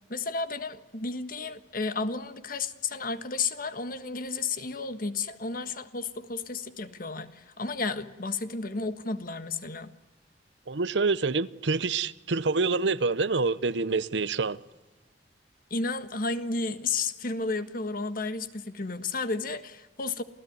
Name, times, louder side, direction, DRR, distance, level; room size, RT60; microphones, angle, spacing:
voice 1, 0.1-9.9 15.7-20.2, left 4 dB, 50° left, 1.5 m, -32 dB
voice 2, 10.7-14.6, right 4 dB, 80° right, 0.8 m, -26 dB
28.0 x 17.0 x 9.5 m
head